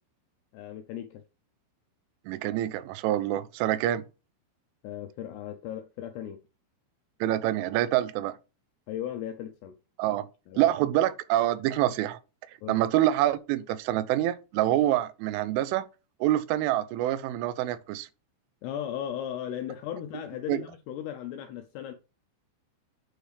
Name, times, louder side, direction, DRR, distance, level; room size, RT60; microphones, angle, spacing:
voice 1, 0.5-1.2 4.8-6.4 8.9-9.7 10.5-10.6 12.6-12.8 18.6-21.9, left 10 dB, 85° left, 2.4 m, -36 dB
voice 2, 2.3-4.0 7.2-8.3 10.0-10.3 10.6-12.2 12.7-15.9 16.2-18.1 20.5-20.6, right 13 dB, 85° right, 3.1 m, -26 dB
8.9 x 3.3 x 4.8 m
omnidirectional pair, 5.5 m